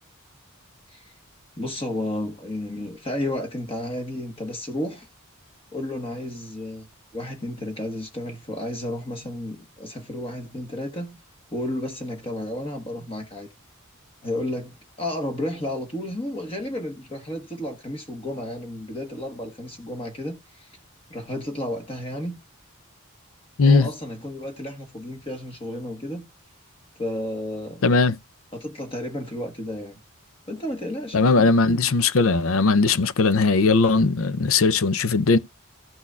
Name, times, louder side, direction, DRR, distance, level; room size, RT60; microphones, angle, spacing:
voice 1, 1.6-5.1 5.7-6.9 7.1-11.2 11.5-13.5 14.2-20.7 21.1-22.4 23.6-26.3 27.0-28.0 28.5-30.0 30.5-31.5, left 1 dB, 25° left, 1.2 m, -32 dB
voice 2, 23.6-23.9 27.8-28.1 31.1-35.4, left 4 dB, 70° left, 0.6 m, -19 dB
15.0 x 6.2 x 2.4 m
head